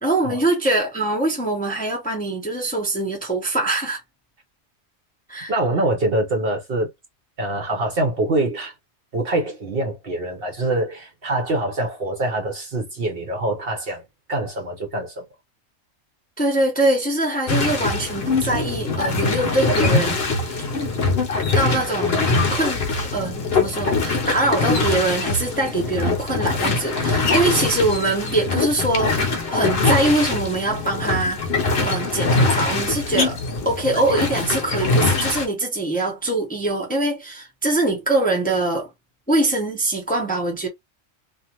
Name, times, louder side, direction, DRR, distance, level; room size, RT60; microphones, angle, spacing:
voice 1, 0.0-4.0 5.3-5.5 16.4-20.2 21.5-22.8 23.1-31.4 31.8-33.4 33.6-38.9 39.3-40.7, right 2 dB, 10° left, 0.7 m, -23 dB
voice 2, 5.5-6.9 7.4-8.7 9.1-15.2, right 2 dB, 55° right, 0.9 m, -24 dB
sound 1, 17.5-35.4, left 3 dB, 55° left, 0.9 m, -22 dB
2.5 x 2.4 x 2.9 m
omnidirectional pair, 1.4 m